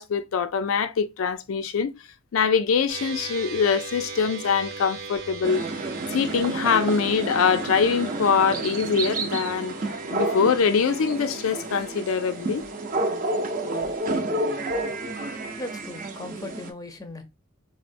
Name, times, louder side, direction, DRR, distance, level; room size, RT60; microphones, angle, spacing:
voice 1, 0.0-1.9 2.3-5.6 6.1-9.8 10.1-12.6, left 6 dB, 80° left, 0.4 m, -23 dB
sound 1, 2.9-14.0, right 2 dB, 85° right, 0.8 m, -40 dB
sound 2, 5.4-16.7, right 2 dB, 40° right, 0.5 m, -30 dB
voice 2, 15.6-17.2, left 2 dB, 15° left, 0.5 m, -38 dB
4.1 x 2.0 x 2.5 m
head